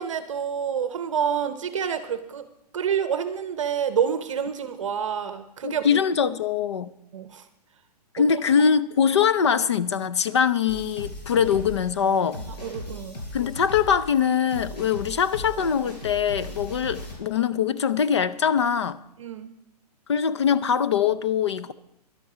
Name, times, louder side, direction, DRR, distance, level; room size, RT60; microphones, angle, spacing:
voice 1, 0.0-2.5 2.7-6.0 7.1-7.4 12.4-13.2 19.2-19.5, right 8 dB, 50° right, 0.8 m, -28 dB
voice 2, 5.6-6.9 8.1-12.4 13.3-19.0 20.1-21.7, left 7 dB, 45° left, 0.5 m, -23 dB
sound 1, 10.7-17.1, left 1 dB, 70° left, 5.3 m, -38 dB
11.5 x 11.5 x 4.8 m
hypercardioid pair, 180°, 21 cm